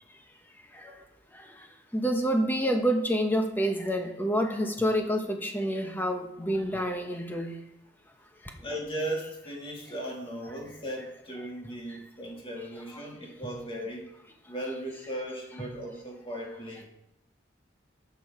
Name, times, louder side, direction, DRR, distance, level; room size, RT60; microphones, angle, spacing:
voice 1, 1.9-7.5, equal, 10° left, 4 dB, 1.1 m, -27 dB
voice 2, 8.6-14.1 14.5-16.8, right 1 dB, 30° left, -1 dB, 2.4 m, -37 dB
12.0 x 7.0 x 4.9 m, 0.80 s
head